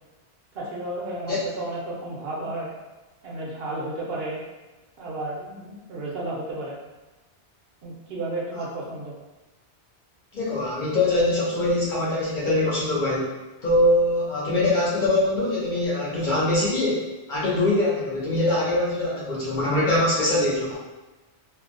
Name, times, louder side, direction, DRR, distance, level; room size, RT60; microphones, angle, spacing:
voice 1, 0.5-2.7 3.2-4.4 5.0-6.8 7.8-9.1, right 2 dB, 65° right, -4 dB, 0.8 m, -32 dB
voice 2, 10.3-13.3 13.6-20.7, left 1 dB, 55° left, -7 dB, 0.7 m, -23 dB
2.5 x 2.0 x 2.5 m, 1.1 s
omnidirectional pair, 1.1 m